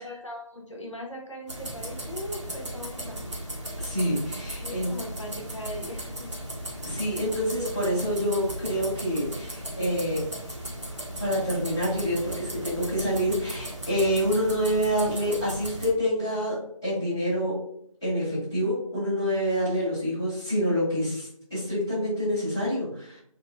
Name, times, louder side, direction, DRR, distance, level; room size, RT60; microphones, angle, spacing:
voice 1, 0.0-3.2 4.6-6.3, left 1 dB, 60° left, 0 dB, 0.7 m, -39 dB
sound 1, 1.5-15.9, right 1 dB, 55° right, 0.8 m, -36 dB
voice 2, 3.8-4.9 6.8-10.2 11.2-17.6 18.0-23.2, equal, 10° left, -18 dB, 0.7 m, -27 dB
2.9 x 2.0 x 2.3 m, 0.68 s
figure-of-eight pair, 165°, 18 cm